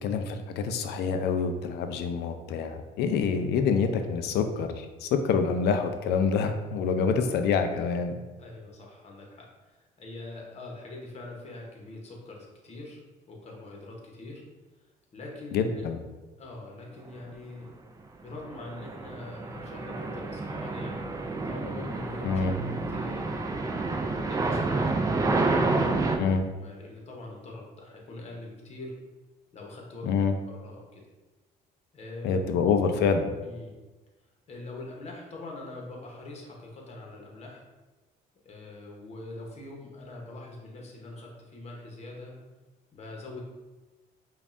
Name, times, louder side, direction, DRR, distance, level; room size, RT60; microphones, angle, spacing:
voice 1, 0.0-8.1 15.5-16.0 22.2-22.5 26.2-26.4 30.0-30.3 32.2-33.3, left 5 dB, 75° left, 7 dB, 0.4 m, -26 dB
voice 2, 8.4-14.4 15.1-15.9 16.4-17.8 18.2-21.0 21.4-22.4 22.9-25.0 25.4-28.9 29.5-31.0 31.9-32.4 33.4-33.7 34.5-37.6 38.4-42.4 42.9-43.4, left 2 dB, 40° left, -1 dB, 1.0 m, -43 dB
sound 1, 18.3-26.2, right 3 dB, 20° right, 0.4 m, -29 dB
5.2 x 2.4 x 2.5 m, 1.2 s
cardioid pair, 110°, 17 cm